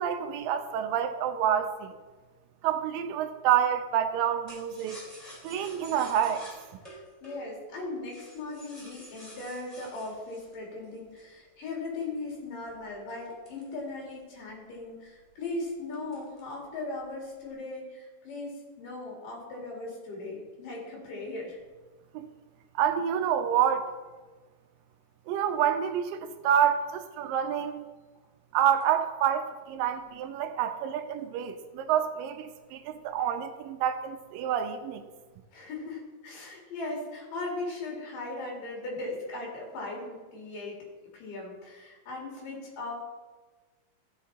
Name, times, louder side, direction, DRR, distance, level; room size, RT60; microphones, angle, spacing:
voice 1, 0.0-1.9 2.6-5.0 5.4-6.5 22.1-22.3 22.8-23.9 25.3-27.9 28.5-35.0, right 9 dB, 80° right, 8 dB, 2.4 m, -28 dB
sound 1, 4.5-11.4 11.9-14.4 14.8-14.9 15.2-15.5 15.9-16.6 17.0-17.5, equal, 10° left, 2.8 m, -50 dB
voice 2, 6.9-21.6 35.5-40.8 41.1-43.0, left 2 dB, 70° left, -2 dB, 4.2 m, -38 dB
14.5 x 6.7 x 4.2 m, 1.3 s
omnidirectional pair, 4.0 m